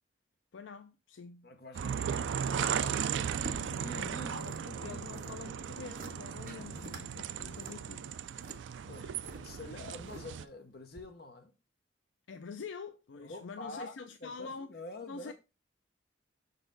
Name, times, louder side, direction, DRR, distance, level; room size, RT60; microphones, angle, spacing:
voice 1, 0.5-1.5 3.9-8.2 9.0-9.1 12.3-14.7 15.1-15.3, left 5 dB, 75° left, 0.4 m, -46 dB
voice 2, 1.4-3.1 3.4-5.3 6.5-6.9 7.2-7.5 8.8-11.5 13.2-15.3, left 2 dB, 55° left, 1.0 m, -47 dB
sound 1, 1.7-10.4, right 8 dB, 70° right, 0.3 m, -36 dB
sound 2, 2.8-4.6 4.9-5.4 5.8-6.1 6.5-7.0 7.4-9.4 9.9-10.5 10.9-11.0, right 1 dB, 45° right, 1.4 m, -49 dB
6.1 x 4.0 x 3.9 m
head